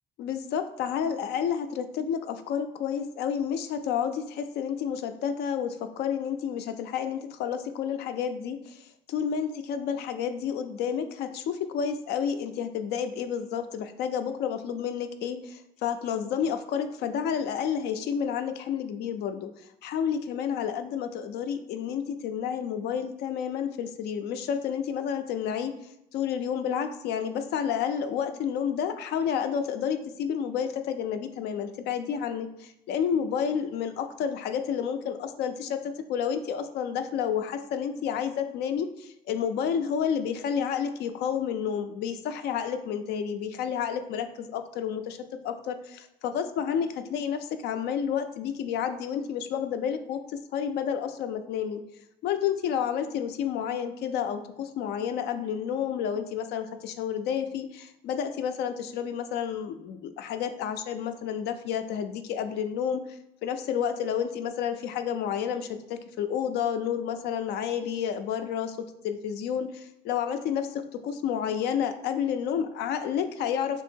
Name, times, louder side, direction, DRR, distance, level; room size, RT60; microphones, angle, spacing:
voice 1, 0.2-19.5 19.8-25.7 26.1-45.2 45.4-50.2 50.5-51.8 52.2-68.8 69.0-73.8, left 8 dB, 75° left, 9 dB, 0.4 m, -30 dB
3.0 x 2.7 x 4.4 m, 0.82 s
cardioid pair, 110°, 17 cm